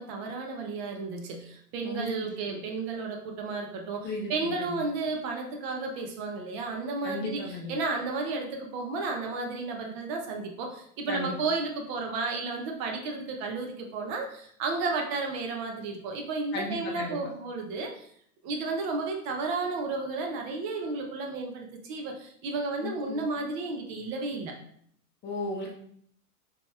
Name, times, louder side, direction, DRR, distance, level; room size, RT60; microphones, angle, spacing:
voice 1, 0.0-18.1 18.4-24.5, right 3 dB, 40° right, 2 dB, 0.7 m, -33 dB
voice 2, 1.8-2.6 4.0-4.8 7.0-7.7 11.1-11.4 16.5-17.2 22.8-23.2 25.2-25.7, left 2 dB, 25° left, -1 dB, 0.7 m, -35 dB
5.0 x 3.0 x 2.3 m, 0.65 s
hypercardioid pair, 100°, 47 cm